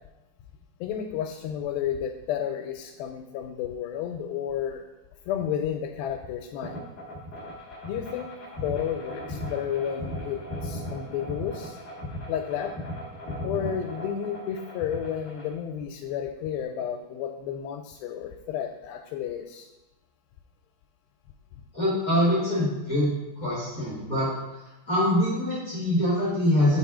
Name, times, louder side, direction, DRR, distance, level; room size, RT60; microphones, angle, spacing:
voice 1, 0.8-4.8 5.3-6.8 7.8-11.8 12.3-12.7 13.4-19.7, left 9 dB, 90° left, 4 dB, 2.4 m, -32 dB
sound 1, 6.6-15.5, left 1 dB, 65° left, 0.9 m, -37 dB
voice 2, 21.7-23.1 23.4-24.3 24.9-26.8, left 1 dB, 40° left, -8 dB, 1.2 m, -24 dB
5.6 x 4.3 x 4.8 m, 1.0 s
omnidirectional pair, 4.1 m